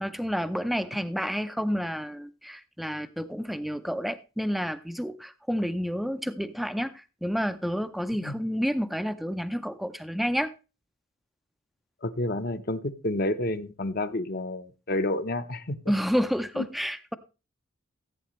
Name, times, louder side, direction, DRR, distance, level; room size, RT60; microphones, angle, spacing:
voice 1, 0.0-10.5 15.9-17.2, equal, ahead, 0.5 m, -30 dB
voice 2, 12.0-15.8 16.6-16.7, left 1 dB, 45° left, 0.8 m, -30 dB
15.5 x 8.3 x 3.1 m
head